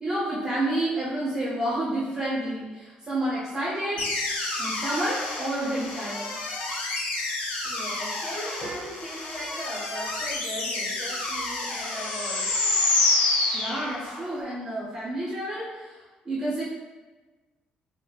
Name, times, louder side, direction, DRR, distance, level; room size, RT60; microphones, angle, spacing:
voice 1, 0.0-4.0 4.6-6.3 13.5-16.0 16.2-16.6, right 1 dB, 20° right, -8 dB, 0.7 m, -29 dB
sound 1, 4.0-14.3, left 2 dB, 85° left, 0.7 m, -28 dB
voice 2, 7.6-12.6, equal, 10° left, -7 dB, 1.1 m, -38 dB
4.9 x 2.1 x 2.3 m, 1.2 s
cardioid pair, 175°, 3 cm